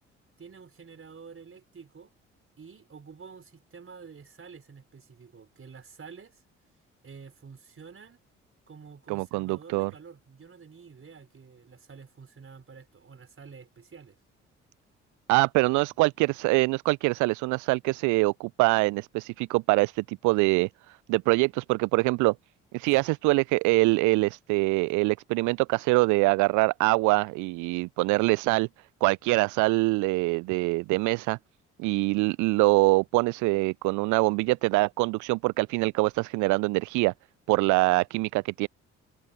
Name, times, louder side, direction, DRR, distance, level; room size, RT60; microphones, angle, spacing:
voice 1, 0.4-2.1 2.6-6.4 7.0-8.2 8.7-14.2 23.0-23.1, right 5 dB, 35° right, 4.9 m, -48 dB
voice 2, 9.1-9.9 15.3-22.3 22.7-28.7 29.0-31.4 31.8-37.1 37.5-38.7, right 24 dB, 55° right, 0.4 m, -24 dB
figure-of-eight pair, 45°, 36 cm